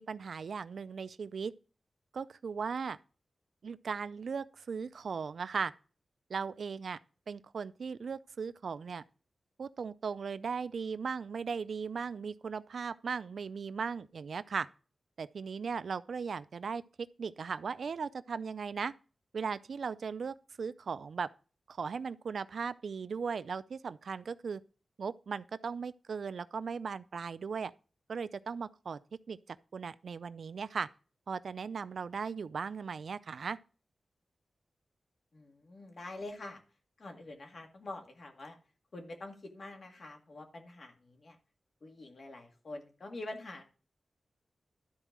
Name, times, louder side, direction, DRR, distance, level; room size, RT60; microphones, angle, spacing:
voice 1, 0.0-1.5 2.1-3.0 3.6-5.7 6.3-7.0 7.3-9.0 9.6-14.7 15.2-18.9 19.3-21.3 21.7-24.6 25.0-27.7 28.1-29.0 29.3-29.4 29.7-30.9 31.3-33.6, right 5 dB, 75° right, 0.4 m, -37 dB
voice 2, 35.3-36.6 37.0-38.6 38.9-41.4 41.8-43.6, left 2 dB, 55° left, 2.0 m, -46 dB
12.0 x 4.4 x 6.0 m
wide cardioid pair, 120°, 0 cm